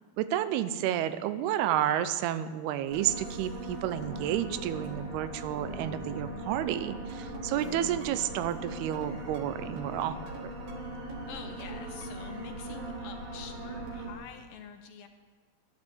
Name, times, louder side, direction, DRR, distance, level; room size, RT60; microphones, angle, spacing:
voice 1, 0.2-10.5, right 11 dB, 90° right, 13 dB, 2.7 m, -31 dB
sound 1, 2.9-14.1, right 2 dB, 45° right, 2.6 m, -40 dB
sound 2, 7.1-12.4, right 4 dB, 70° right, 1.5 m, -51 dB
voice 2, 11.3-15.1, left 7 dB, 80° left, 7 dB, 2.2 m, -46 dB
11.5 x 10.5 x 7.8 m, 1.5 s
omnidirectional pair, 4.5 m